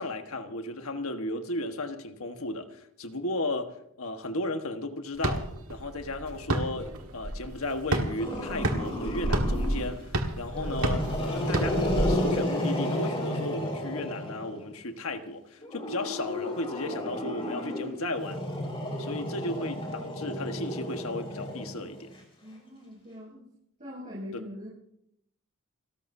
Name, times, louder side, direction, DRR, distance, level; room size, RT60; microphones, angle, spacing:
voice 1, 0.0-18.4 19.0-22.1, left 2 dB, 80° left, 6 dB, 1.4 m, -35 dB
sound 1, 5.2-12.0, right 1 dB, 90° right, 1.7 m, -31 dB
Growling, 8.2-9.9 10.5-14.6 15.6-22.1, left 1 dB, 25° left, 4.7 m, -32 dB
voice 2, 22.4-23.5 23.8-24.7, left 1 dB, 35° right, -7 dB, 7.7 m, -42 dB
29.5 x 13.5 x 2.7 m, 0.75 s
head